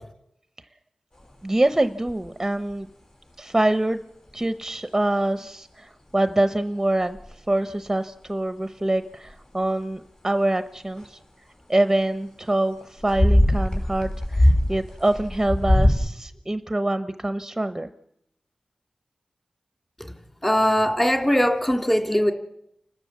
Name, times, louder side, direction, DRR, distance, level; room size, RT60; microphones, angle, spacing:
sound 1, 1.2-1.3 2.1-2.3 2.7-2.8 4.3-4.4 6.5-6.6 7.1-7.3 9.2-9.3 11.0-11.1 13.0-15.9, left 1 dB, 45° left, 5.4 m, -21 dB
voice 1, 1.4-2.9 3.4-4.0 4.3-7.2 7.5-11.2 11.7-17.9, right 1 dB, 20° right, 11 dB, 0.7 m, -25 dB
voice 2, 20.4-22.3, equal, 15° left, 6 dB, 2.7 m, -20 dB
29.5 x 13.0 x 7.3 m, 0.78 s
wide cardioid pair, 70°, 2 cm